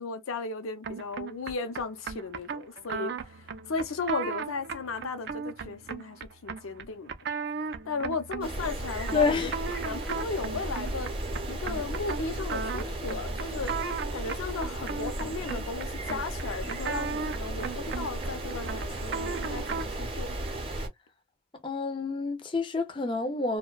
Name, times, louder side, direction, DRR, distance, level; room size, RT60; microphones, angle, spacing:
voice 1, 0.0-3.1 3.7-7.1 7.9-9.5 9.8-11.1 11.5-13.7 14.1-20.3, left 4 dB, 90° left, 0.5 m, -35 dB
sound 1, 0.8-20.0, right 5 dB, 50° right, 0.3 m, -37 dB
sound 2, 8.4-20.9, right 1 dB, 25° right, 0.7 m, -35 dB
voice 2, 9.1-9.6 21.6-23.6, left 4 dB, 25° left, 0.4 m, -28 dB
2.6 x 2.1 x 2.2 m
head